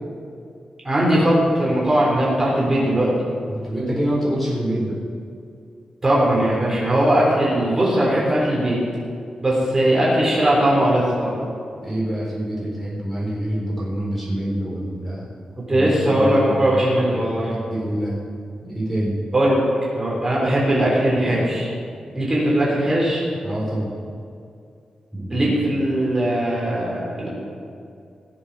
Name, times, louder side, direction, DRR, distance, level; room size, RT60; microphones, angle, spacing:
voice 1, 0.8-3.1 6.0-8.8 9.4-11.3 15.7-17.5 19.3-19.7 20.0-21.7 22.1-23.2 25.3-27.3, right 1 dB, 20° right, -6 dB, 3.8 m, -19 dB
voice 2, 3.5-5.0 11.8-15.3 15.7-18.2 18.6-19.2 23.4-23.9 25.1-25.5, right 1 dB, 5° left, -6 dB, 4.0 m, -26 dB
19.0 x 7.1 x 6.3 m, 2.4 s
wide cardioid pair, 145°, 2 cm